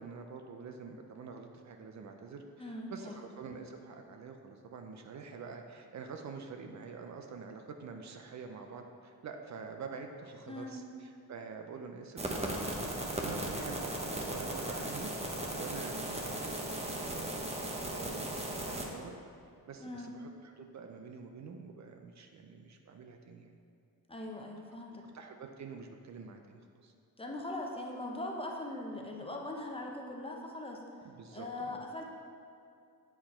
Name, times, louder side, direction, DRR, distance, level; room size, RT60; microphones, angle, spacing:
voice 1, 0.0-19.1 19.7-23.6 25.1-26.9 31.0-31.8, right 5 dB, 50° right, 4 dB, 0.6 m, -47 dB
voice 2, 2.6-3.1 10.5-10.8 19.8-20.1 24.1-25.1 27.2-30.8 31.3-32.0, left 1 dB, 15° left, 0 dB, 0.8 m, -41 dB
sound 1, 12.2-18.8, right 1 dB, 15° right, 0.8 m, -37 dB
7.7 x 4.7 x 4.3 m, 2.4 s
cardioid pair, 115°, 37 cm